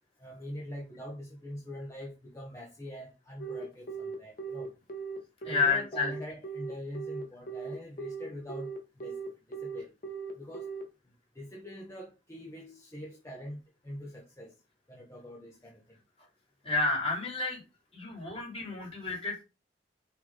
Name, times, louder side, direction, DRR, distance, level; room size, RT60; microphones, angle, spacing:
voice 1, 0.2-4.7 5.4-8.7 9.0-9.2 9.5-9.9 10.4-10.6 11.3-13.6 13.8-14.5 14.9-15.8, left 1 dB, 20° left, 1.3 m, -43 dB
Telephone, 3.4-10.8, right 6 dB, 55° left, 1.5 m, -38 dB
voice 2, 5.4-6.1 16.6-17.6 17.9-19.4, left 4 dB, 35° left, 3.5 m, -30 dB
5.8 x 5.8 x 3.9 m
head